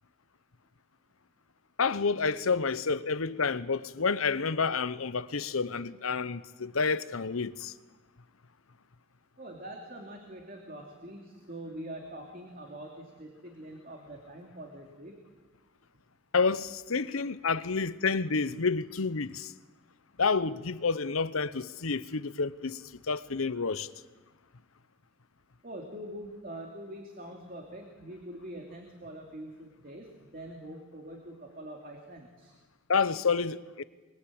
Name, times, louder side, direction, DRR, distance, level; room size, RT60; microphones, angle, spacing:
voice 1, 1.8-7.7 16.3-19.5 20.2-23.9 32.9-33.8, left 4 dB, 80° left, 0.9 m, -29 dB
voice 2, 9.4-15.2 25.6-32.5, right 1 dB, 40° right, 2.7 m, -44 dB
23.5 x 23.0 x 8.8 m
head